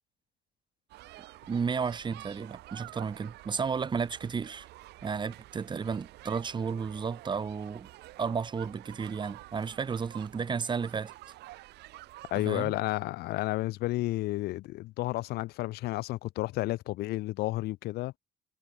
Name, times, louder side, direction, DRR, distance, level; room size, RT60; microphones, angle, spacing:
sound 1, 0.9-12.8, right 18 dB, 80° right, 2.2 m, -50 dB
voice 1, 1.5-4.7 5.0-7.9 8.2-11.1 12.4-12.7, right 5 dB, 25° right, 1.0 m, -33 dB
voice 2, 12.3-18.2, left 18 dB, 70° left, 0.4 m, -31 dB
cardioid pair, 110°, 17 cm